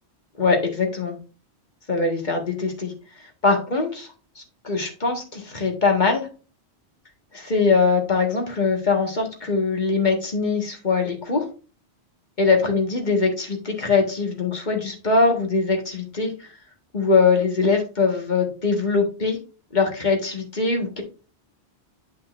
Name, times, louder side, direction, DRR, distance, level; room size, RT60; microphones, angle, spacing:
voice 1, 0.4-1.2 1.9-2.9 3.4-4.1 4.4-6.3 7.3-11.5 12.4-16.5 16.9-19.4 19.7-21.0, left 4 dB, 45° left, 2 dB, 1.8 m, -22 dB
10.0 x 5.4 x 2.6 m, 0.35 s
omnidirectional pair, 1.1 m